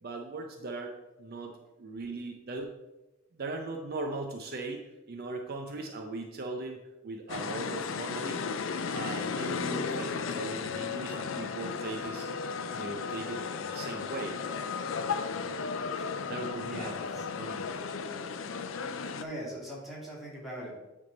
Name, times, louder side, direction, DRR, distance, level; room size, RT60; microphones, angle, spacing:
voice 1, 0.0-2.7 3.3-6.8 7.0-8.4 8.9-12.3 12.8-14.4 16.3-16.9 17.4-17.8, right 3 dB, 50° right, 3 dB, 0.6 m, -39 dB
sound 1, 7.3-19.2, left 5 dB, 75° left, 0.5 m, -35 dB
voice 2, 16.6-17.3 19.1-20.7, equal, ahead, -6 dB, 2.3 m, -41 dB
9.7 x 3.6 x 3.9 m, 1.0 s
head